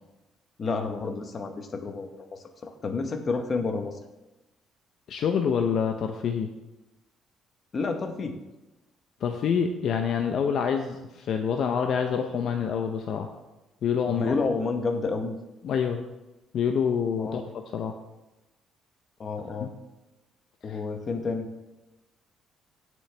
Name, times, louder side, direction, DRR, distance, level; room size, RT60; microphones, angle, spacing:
voice 1, 0.6-4.0 7.7-8.3 14.1-15.4 17.2-17.5 19.2-19.7 20.6-21.5, left 4 dB, 30° left, 6 dB, 1.0 m, -30 dB
voice 2, 5.1-6.5 9.2-13.3 13.8-14.3 15.6-16.0 16.5-17.4 17.7-18.0 19.6-19.7 20.7-20.8, left 7 dB, 50° left, 5 dB, 0.6 m, -26 dB
17.5 x 6.3 x 3.3 m, 1.0 s
cardioid pair, 165°, 0 cm